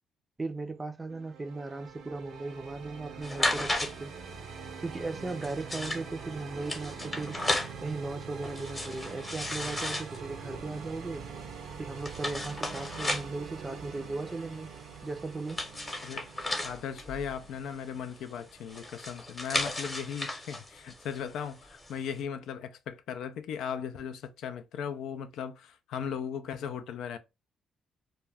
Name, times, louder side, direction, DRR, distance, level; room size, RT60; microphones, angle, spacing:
voice 1, 0.4-4.1 4.8-11.2 11.8-14.7 15.0-15.6, right 3 dB, 20° right, 0.4 m, -37 dB
sound 1, 1.1-18.8, right 6 dB, 75° right, 0.5 m, -44 dB
sound 2, 3.2-22.2, left 1 dB, 20° left, 0.8 m, -36 dB
voice 2, 16.6-27.2, left 7 dB, 80° left, 0.3 m, -37 dB
2.3 x 2.1 x 3.3 m
cardioid pair, 90°, 0 cm